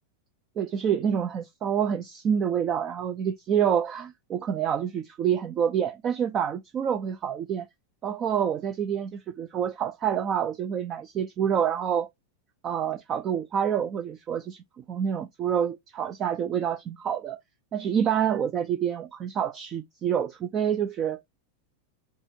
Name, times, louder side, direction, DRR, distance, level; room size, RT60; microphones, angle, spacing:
voice 1, 0.6-7.7 8.0-12.1 12.6-17.4 17.7-21.2, right 8 dB, 30° right, 0.4 m, -27 dB
5.3 x 2.5 x 2.8 m
figure-of-eight pair, 90°, 0 cm